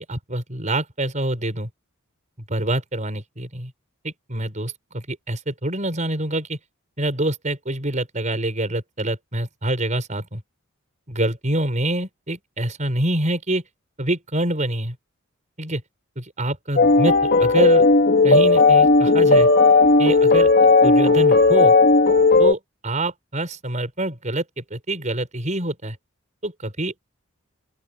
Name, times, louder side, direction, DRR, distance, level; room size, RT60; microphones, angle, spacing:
voice 1, 0.0-1.7 2.5-3.7 4.0-6.6 7.0-10.4 11.1-13.6 14.0-15.0 15.6-15.8 16.2-17.8 18.2-19.5 20.0-20.5 20.8-21.7 22.4-26.0 26.4-27.0, right 1 dB, 35° right, 6.3 m, -26 dB
sound 1, 16.8-22.5, left 3 dB, 50° left, 2.6 m, -15 dB
open air
head